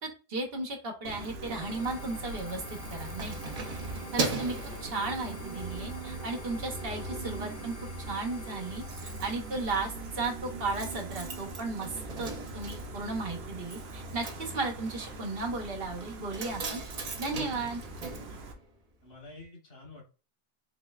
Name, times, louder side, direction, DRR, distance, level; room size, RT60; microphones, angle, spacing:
voice 1, 0.0-3.5 4.1-4.5 4.8-7.7 8.1-16.8 17.2-17.8, right 3 dB, 70° right, 2 dB, 1.1 m, -35 dB
Gull seagull, 1.0-18.5, right 2 dB, 90° right, 1.0 m, -41 dB
sound 1, 1.5-10.9, left 7 dB, 55° left, 0.4 m, -50 dB
Keys jangling, 2.7-5.7 6.1-6.3 6.7-7.4 7.7-7.8 8.0-8.1 8.3-19.1 19.4-19.5, right 4 dB, 45° right, 0.6 m, -40 dB
voice 2, 19.0-20.0, left 2 dB, 75° left, 0 dB, 1.6 m, -49 dB
3.8 x 3.0 x 2.3 m, 0.34 s
omnidirectional pair, 1.0 m